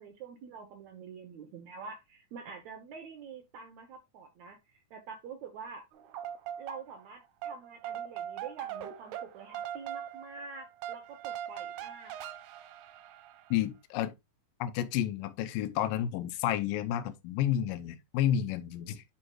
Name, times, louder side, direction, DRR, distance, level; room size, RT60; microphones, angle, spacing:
voice 1, 0.0-5.9 6.6-12.2, right 5 dB, 70° right, 1.7 m, -46 dB
sound 1, 5.9-7.1 7.4-13.6, right 10 dB, 85° right, 2.9 m, -41 dB
voice 2, 13.5-14.1 14.6-19.0, left 11 dB, 85° left, 2.0 m, -31 dB
11.0 x 4.7 x 2.4 m
omnidirectional pair, 4.6 m